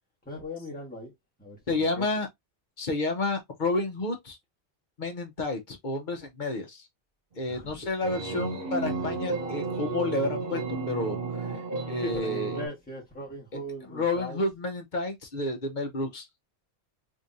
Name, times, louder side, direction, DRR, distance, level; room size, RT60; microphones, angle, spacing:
voice 1, 0.2-1.1 1.4-2.0 7.5-7.7 12.0-14.4, left 1 dB, 10° left, 1.6 m, -39 dB
voice 2, 1.7-2.3 2.8-4.4 5.0-6.9 7.4-11.2 11.9-12.6 13.9-16.3, left 2 dB, 50° left, 1.1 m, -30 dB
sound 1, 7.3-12.7, right 4 dB, 60° right, 1.4 m, -33 dB
sound 2, 8.4-11.8, right 1 dB, 10° right, 0.3 m, -40 dB
3.7 x 3.3 x 2.7 m
omnidirectional pair, 1.1 m